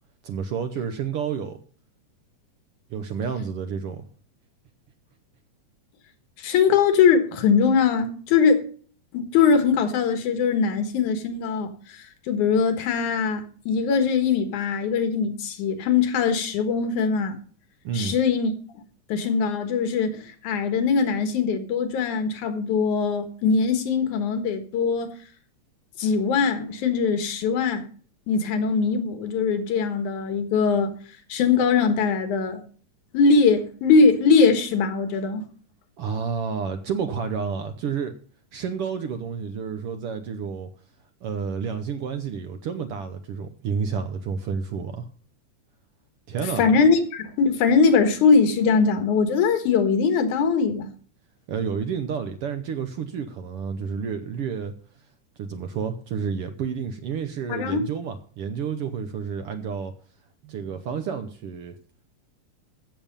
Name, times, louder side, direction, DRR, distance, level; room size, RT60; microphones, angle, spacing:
voice 1, 0.2-1.6 2.9-4.0 17.8-18.2 36.0-38.1 38.5-40.7 41.2-45.1 46.3-46.7 51.5-54.7 55.4-59.9 60.4-61.8, right 6 dB, 65° right, 1.5 m, -30 dB
voice 2, 6.4-8.6 9.1-17.4 17.9-18.5 19.1-25.1 26.0-27.8 28.3-30.9 31.3-32.6 33.1-35.5 46.6-50.9 57.5-57.8, left 5 dB, 85° left, 2.9 m, -21 dB
14.5 x 7.0 x 5.2 m
omnidirectional pair, 3.4 m